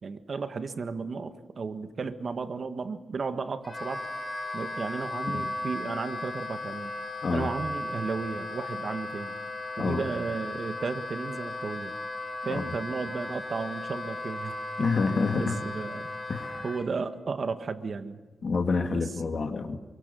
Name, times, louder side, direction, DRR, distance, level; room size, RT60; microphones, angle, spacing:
voice 1, 0.0-4.0 4.5-6.9 7.3-9.4 9.8-11.9 12.4-16.1 16.6-18.2 18.9-19.1, right 4 dB, 45° right, 9 dB, 1.5 m, -34 dB
Wind instrument woodwind instrument, 3.6-16.8, left 2 dB, 25° left, 3.4 m, -36 dB
voice 2, 14.8-15.6 16.3-16.7 18.4-19.8, left 4 dB, 50° left, 6 dB, 2.1 m, -28 dB
27.0 x 23.5 x 7.0 m, 1.3 s
wide cardioid pair, 140°, 0 cm